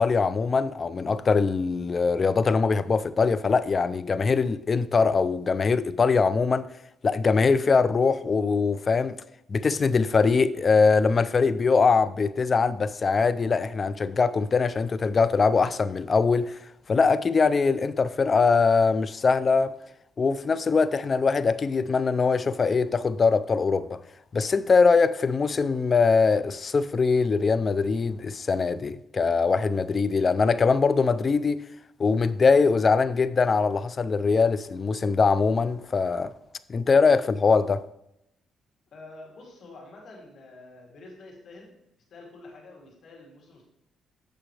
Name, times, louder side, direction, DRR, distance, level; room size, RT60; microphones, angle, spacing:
voice 1, 0.0-6.7 7.0-9.2 9.5-16.6 16.9-19.7 20.2-24.0 24.3-31.6 32.0-36.3 36.7-37.8, left 4 dB, 40° left, 0.4 m, -22 dB
voice 2, 38.9-41.7 42.1-43.6, left 2 dB, 60° left, 2.8 m, -47 dB
8.4 x 6.7 x 3.3 m
cardioid pair, 90°, 0 cm